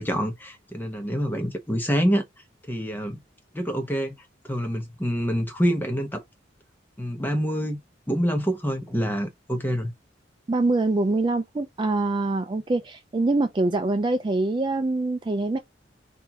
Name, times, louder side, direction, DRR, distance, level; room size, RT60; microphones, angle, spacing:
voice 1, 0.0-2.2 2.7-3.2 3.5-6.2 7.0-7.8 8.1-9.9, equal, 10° left, 1.0 m, -26 dB
voice 2, 10.5-15.6, right 2 dB, 25° right, 0.4 m, -24 dB
4.4 x 2.7 x 3.6 m
head